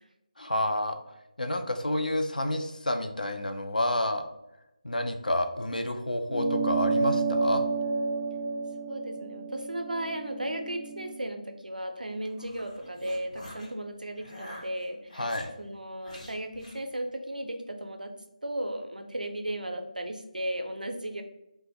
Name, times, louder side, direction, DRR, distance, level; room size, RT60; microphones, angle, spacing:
voice 1, 0.4-1.0 1.4-4.3 4.8-7.6 15.1-15.5, left 1 dB, 90° left, 6 dB, 0.3 m, -29 dB
sound 1, 6.3-11.1, right 4 dB, 5° left, 0.3 m, -30 dB
voice 2, 8.9-18.1 18.4-21.2, right 1 dB, 85° right, 5 dB, 0.4 m, -35 dB
sound 2, 12.1-13.7 14.2-15.5 16.0-16.8, equal, 65° left, 0.9 m, -46 dB
2.1 x 2.0 x 3.4 m, 0.90 s
figure-of-eight pair, 160°, 4 cm